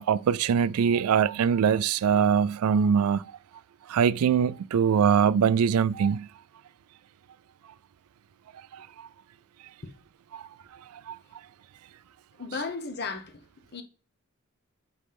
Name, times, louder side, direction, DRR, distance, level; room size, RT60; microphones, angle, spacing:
voice 1, 0.0-3.3 3.9-6.3 8.7-9.1 10.3-10.5 11.1-11.2, right 7 dB, 90° right, 0.3 m, -23 dB
voice 2, 12.4-13.4 13.7-13.8, left 4 dB, 50° left, 1.1 m, -34 dB
8.3 x 5.2 x 3.5 m
head